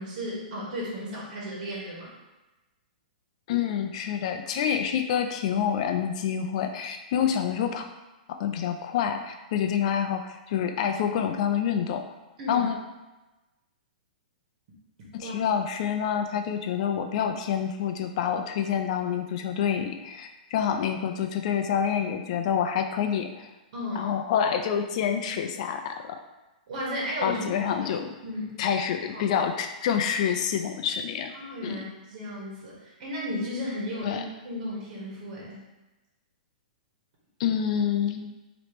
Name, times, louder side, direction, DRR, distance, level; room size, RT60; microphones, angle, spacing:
voice 1, 0.0-2.1 7.2-7.3 12.4-12.7 15.2-15.3 23.7-24.1 26.7-27.4 28.2-28.6 29.1-29.3 31.3-35.6, left 1 dB, 55° right, -5 dB, 1.5 m, -34 dB
voice 2, 3.5-7.8 8.3-12.0 12.5-12.8 15.1-23.5 23.9-26.1 27.2-28.1 28.6-31.3 31.6-31.8 34.0-34.2 37.4-38.3, left 8 dB, 45° left, 6 dB, 0.5 m, -27 dB
4.9 x 3.0 x 3.1 m, 1.1 s
hypercardioid pair, 155°, 5 cm